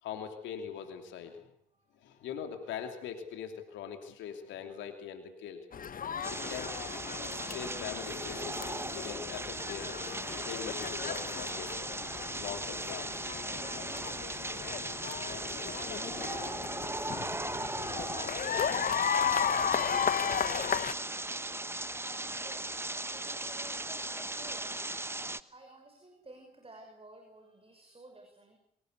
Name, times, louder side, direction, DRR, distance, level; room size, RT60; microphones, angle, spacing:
voice 1, 0.0-1.5 2.0-5.6 6.3-6.7 7.4-9.9 10.4-11.7 12.4-13.3, left 8 dB, 70° left, 6 dB, 2.9 m, -42 dB
voice 2, 1.7-2.3 17.2-21.6 21.9-24.8 25.1-28.6, right 2 dB, 30° right, 4 dB, 5.9 m, -55 dB
sound 1, 5.7-20.9, left 7 dB, 45° left, 1.1 m, -35 dB
sound 2, 6.2-25.4, right 2 dB, 10° right, 1.2 m, -38 dB
25.0 x 18.5 x 8.3 m, 0.69 s
hypercardioid pair, 45°, 20 cm